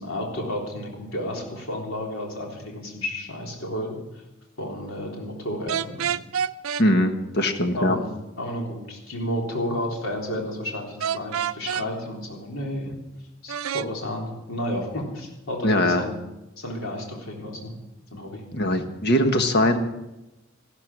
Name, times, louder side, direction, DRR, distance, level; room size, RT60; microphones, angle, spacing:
voice 1, 0.0-4.0 4.6-6.1 7.8-8.0 8.4-13.0 13.4-16.2 16.6-17.8 18.1-18.4, left 1 dB, 80° left, -1 dB, 3.8 m, -31 dB
sound 1, 5.7-6.9 11.0-11.9 13.5-13.9, right 8 dB, 90° right, 0.5 m, -27 dB
voice 2, 6.8-8.0 15.6-16.0 18.5-19.8, left 1 dB, 50° left, 6 dB, 1.4 m, -21 dB
14.5 x 13.0 x 6.1 m, 0.96 s
head